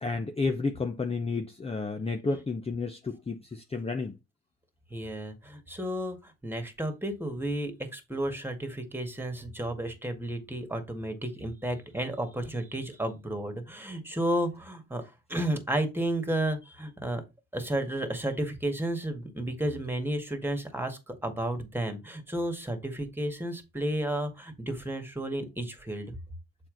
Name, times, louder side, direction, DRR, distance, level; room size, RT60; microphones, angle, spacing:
voice 1, 0.0-4.2, left 3 dB, 20° left, 0.7 m, -31 dB
voice 2, 4.9-17.2 17.5-26.1, right 1 dB, 5° right, 1.9 m, -32 dB
7.1 x 4.4 x 3.9 m
cardioid pair, 90°, 30 cm